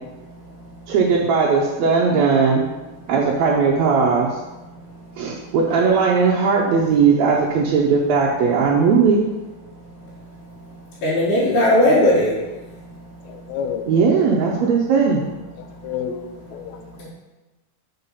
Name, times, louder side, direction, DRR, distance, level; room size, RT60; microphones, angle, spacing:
voice 1, 0.2-0.9 4.7-5.5 9.7-13.5 15.6-15.9 16.6-17.1, left 1 dB, 70° left, -9 dB, 2.9 m, -23 dB
voice 2, 0.9-2.6 3.1-4.4 5.2-9.2 13.9-15.2, right 5 dB, 80° right, 0 dB, 1.6 m, -18 dB
voice 3, 13.2-14.3 15.6-16.8, left 8 dB, 85° left, 6 dB, 1.6 m, -30 dB
5.5 x 4.8 x 5.4 m, 1.1 s
omnidirectional pair, 3.8 m